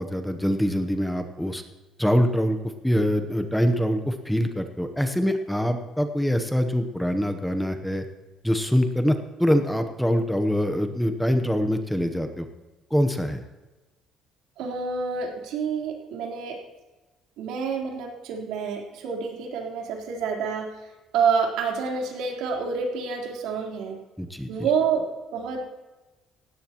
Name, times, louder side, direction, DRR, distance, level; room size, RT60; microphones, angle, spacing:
voice 1, 0.0-1.6 2.0-2.6 2.8-8.0 8.4-9.1 9.4-12.5 12.9-13.4 24.2-24.5, equal, ahead, 7 dB, 0.9 m, -24 dB
voice 2, 14.6-16.6 17.4-20.8 21.1-24.0 24.5-25.6, right 5 dB, 85° right, 0 dB, 3.8 m, -28 dB
18.0 x 17.0 x 3.0 m, 1.2 s
cardioid pair, 170°, 0 cm